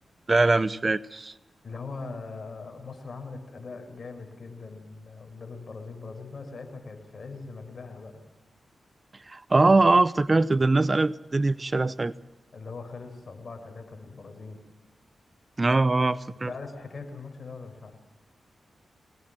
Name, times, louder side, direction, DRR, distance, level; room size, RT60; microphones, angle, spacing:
voice 1, 0.3-1.3 9.3-12.1 15.6-16.5, right 3 dB, 35° right, 17 dB, 0.7 m, -22 dB
voice 2, 1.6-8.2 12.5-14.6 16.4-18.0, left 4 dB, 55° left, 5 dB, 6.7 m, -41 dB
24.5 x 19.0 x 7.6 m, 1.1 s
cardioid pair, 55°, 0 cm